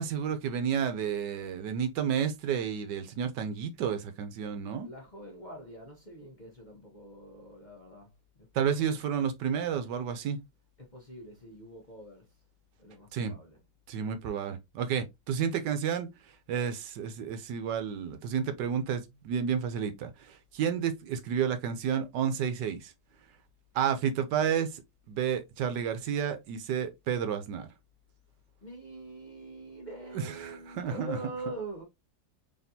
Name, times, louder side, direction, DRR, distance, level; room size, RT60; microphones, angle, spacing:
voice 1, 0.0-4.9 8.5-10.4 13.1-13.3 13.9-16.1 16.5-22.9 23.7-24.8 25.1-27.7 30.1-31.2, right 8 dB, 75° right, 1.3 m, -31 dB
voice 2, 4.8-8.1 8.5-9.1 10.8-12.3 12.8-13.6 28.6-31.8, right 1 dB, 30° left, 0.9 m, -44 dB
4.1 x 3.4 x 2.7 m
omnidirectional pair, 1.9 m